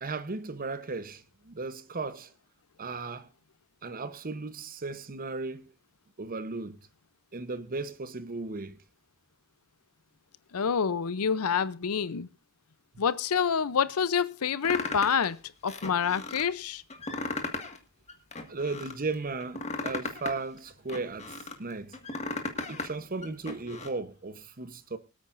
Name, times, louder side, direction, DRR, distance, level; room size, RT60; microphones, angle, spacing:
voice 1, 0.0-2.3 2.8-3.3 3.8-5.7 6.2-6.8 7.3-8.8 18.5-22.0 22.7-25.0, right 3 dB, 40° right, 0.9 m, -36 dB
voice 2, 10.5-12.3 13.0-15.4 15.6-16.8, left 7 dB, 90° left, 0.6 m, -27 dB
sound 1, 14.6-15.3 15.7-16.4 16.9-17.8 18.1-18.9 19.4-21.6 21.9-22.9 23.2-23.9, left 3 dB, 30° left, 1.8 m, -36 dB
24.5 x 8.8 x 2.6 m
head